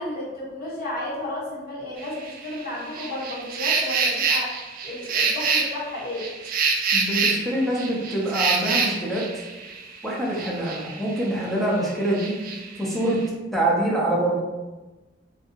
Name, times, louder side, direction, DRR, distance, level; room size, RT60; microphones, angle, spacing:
voice 1, 0.0-4.5 4.8-6.3, left 1 dB, 50° left, -7 dB, 1.0 m, -32 dB
sound 1, 2.0-11.5 11.7-13.3, right 4 dB, 50° right, 0.3 m, -27 dB
voice 2, 6.9-9.3 10.0-12.3 12.8-13.2 13.5-14.4, right 1 dB, ahead, -5 dB, 0.5 m, -25 dB
2.7 x 2.2 x 2.8 m, 1.1 s
head